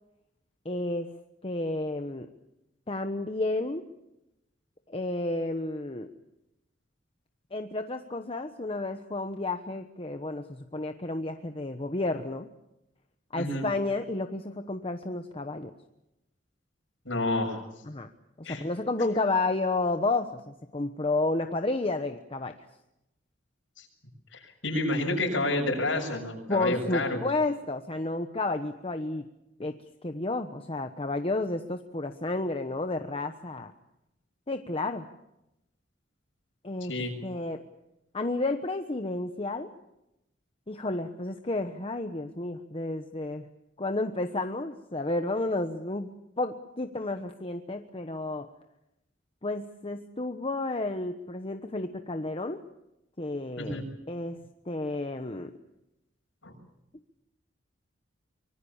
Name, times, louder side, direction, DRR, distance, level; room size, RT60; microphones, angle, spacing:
voice 1, 0.6-1.1 1.4-2.3 2.9-3.8 4.9-6.1 7.5-12.5 13.3-15.7 17.8-18.1 18.4-22.5 26.5-29.2 29.6-29.8 30.0-33.7 34.5-35.1 36.6-36.9 37.2-37.6 38.1-39.7 40.7-43.4 43.8-46.1 46.4-48.5 49.4-52.6 53.2-53.8 54.1-54.4 54.7-55.5, left 2 dB, 30° left, 6 dB, 1.1 m, -31 dB
voice 2, 17.1-17.6 18.4-18.6 23.8-23.9 24.6-27.2 36.8-37.1 53.6-53.8 56.4-56.5, left 2 dB, 80° left, 3 dB, 7.0 m, -29 dB
25.0 x 24.0 x 7.3 m, 0.89 s
head